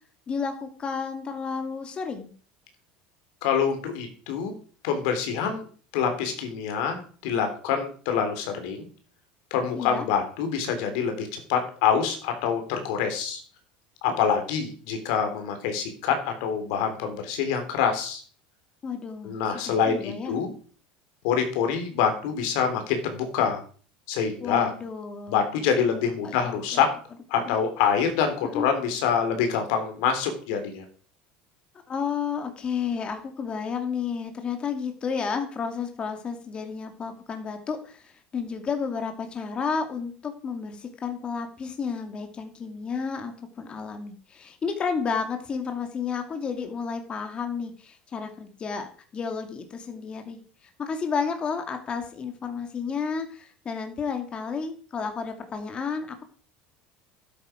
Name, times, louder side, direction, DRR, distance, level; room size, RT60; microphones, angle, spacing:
voice 1, 0.3-2.3 9.7-10.1 18.8-20.4 24.4-25.5 25.9-26.8 27.4-27.6 28.5-28.7 31.9-48.9 49.1-50.4 50.8-56.2, left 5 dB, 30° left, 5 dB, 2.3 m, -32 dB
voice 2, 3.4-4.5 4.8-5.6 5.9-8.9 9.5-13.4 14.0-18.2 19.2-20.5 21.2-23.6 24.1-24.7 25.3-26.9 27.3-30.8, left 7 dB, 75° left, 6 dB, 3.4 m, -26 dB
12.5 x 9.3 x 5.0 m, 0.43 s
supercardioid pair, 125°, 4 cm